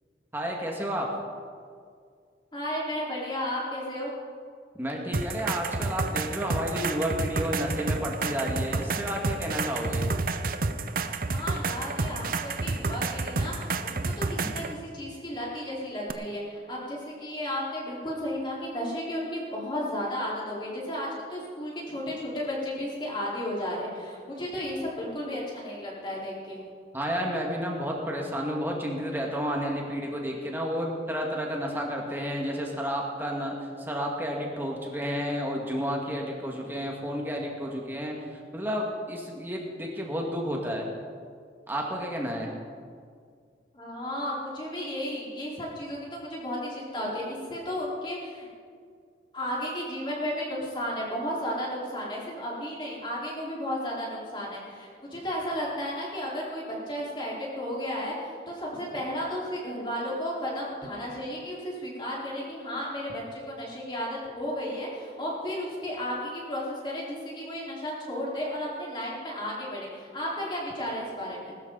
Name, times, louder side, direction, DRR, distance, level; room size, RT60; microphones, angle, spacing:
voice 1, 0.3-1.2 4.8-10.1 26.9-38.1 38.5-40.9 41.7-42.5, equal, 10° right, -1 dB, 1.9 m, -31 dB
voice 2, 2.5-4.1 11.3-14.6 14.9-26.6 43.7-48.5 49.3-71.6, equal, 25° left, -5 dB, 4.2 m, -33 dB
sound 1, 5.1-14.7 16.1-16.2, right 3 dB, 50° right, 0.7 m, -30 dB
20.5 x 13.0 x 4.0 m, 2.1 s
head